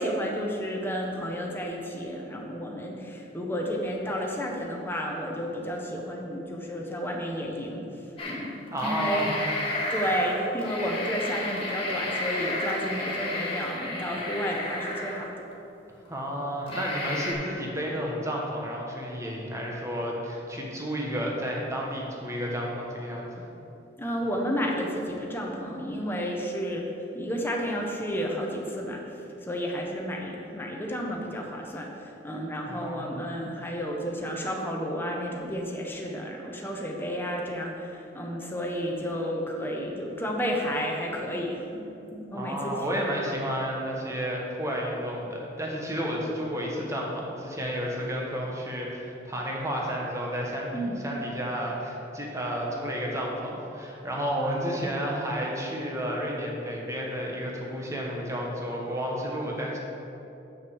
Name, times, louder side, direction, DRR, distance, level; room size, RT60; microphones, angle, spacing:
voice 1, 0.0-7.8 8.2-9.3 9.9-15.3 24.0-29.0 29.4-43.1 50.7-51.0, equal, 10° left, -1 dB, 1.0 m, -31 dB
sound 1, 8.2-8.4 8.7-15.5 16.0-16.1 16.7-17.3, left 2 dB, 30° left, 1.7 m, -32 dB
voice 2, 8.7-9.5 16.1-23.3 32.6-33.2 42.3-59.8, equal, 15° right, -2 dB, 1.3 m, -31 dB
6.5 x 6.4 x 7.0 m, 2.9 s
head